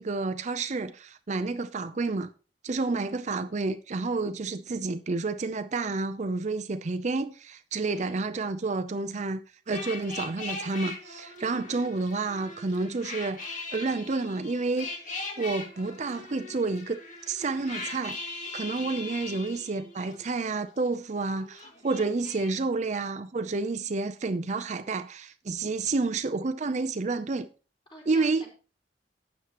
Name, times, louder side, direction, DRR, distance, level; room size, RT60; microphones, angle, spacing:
voice 1, 0.0-2.3 2.6-14.9 15.4-17.0 17.3-27.5 28.1-28.4, right 3 dB, 40° right, 0.5 m, -30 dB
voice 2, 7.8-8.2 11.5-11.7 27.9-28.5, left 1 dB, 30° left, 4.4 m, -48 dB
sound 1, 9.7-20.9 21.2-22.5, left 3 dB, 45° left, 2.2 m, -40 dB
12.5 x 8.8 x 3.0 m
head